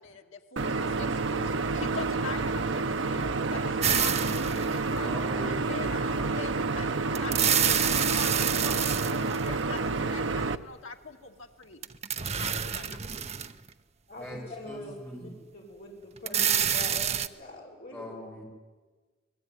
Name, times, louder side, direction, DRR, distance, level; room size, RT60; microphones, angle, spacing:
voice 1, 0.0-3.2 3.5-5.1 5.5-11.8 12.3-13.0, left 5 dB, 75° left, 3 dB, 2.3 m, -43 dB
sound 1, 0.6-10.6, right 3 dB, 65° right, 0.9 m, -29 dB
sound 2, 3.8-5.1 7.1-9.8 11.8-13.7 14.3-14.4 16.2-17.3, right 8 dB, 30° right, 0.8 m, -28 dB
voice 2, 4.8-6.4 14.2-14.4 14.6-15.3 17.9-18.4, equal, 10° left, -2 dB, 7.5 m, -41 dB
voice 3, 14.1-15.0 15.2-18.2, left 1 dB, 45° left, -1 dB, 6.3 m, -44 dB
28.5 x 20.5 x 9.6 m, 1.4 s
head